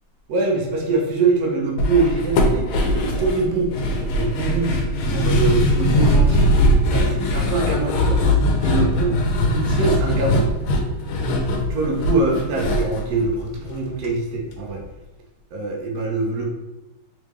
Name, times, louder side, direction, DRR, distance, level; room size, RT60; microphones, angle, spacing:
voice 1, 0.3-3.8 4.1-4.8 5.1-6.5 6.9-8.2 8.6-9.2 9.5-10.4 11.6-14.8 15.5-16.5, right 3 dB, 85° right, 0 dB, 0.8 m, -23 dB
sound 1, 1.8-14.1 14.3-14.4 14.8-14.9, left 1 dB, 75° left, 1.4 m, -20 dB
3.8 x 3.5 x 3.1 m, 1.0 s
omnidirectional pair, 2.4 m